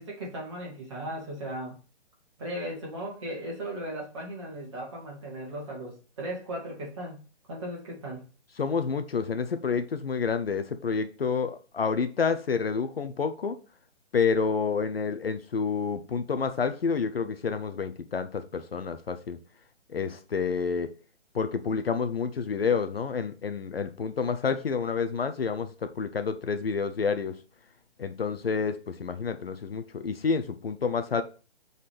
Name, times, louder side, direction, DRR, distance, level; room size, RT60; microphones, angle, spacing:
voice 1, 0.0-1.8 2.4-8.2, right 1 dB, 25° right, 2.6 m, -37 dB
voice 2, 8.6-13.6 14.1-19.4 19.9-20.9 21.3-27.4 28.0-31.2, left 5 dB, 60° left, 0.6 m, -29 dB
5.9 x 4.1 x 4.9 m
hypercardioid pair, 180°, 34 cm